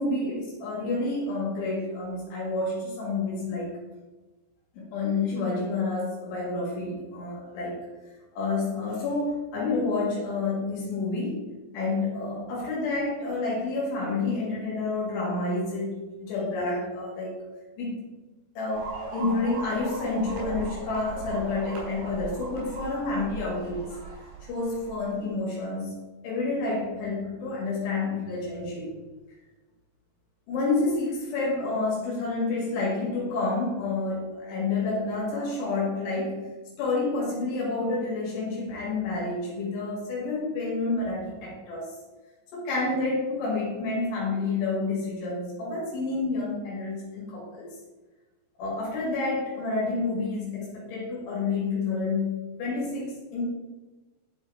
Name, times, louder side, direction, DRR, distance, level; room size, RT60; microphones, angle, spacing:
voice 1, 0.0-3.7 4.7-7.8 8.3-11.4 11.7-17.4 17.8-18.0 18.6-24.0 24.5-29.0 30.5-36.4 36.8-41.9 42.5-47.7 48.6-53.4, left 3 dB, 85° left, -4 dB, 4.2 m, -29 dB
sound 1, 18.7-25.1, right 4 dB, 85° right, 4.9 m, -38 dB
11.5 x 4.0 x 4.5 m, 1.2 s
omnidirectional pair, 4.8 m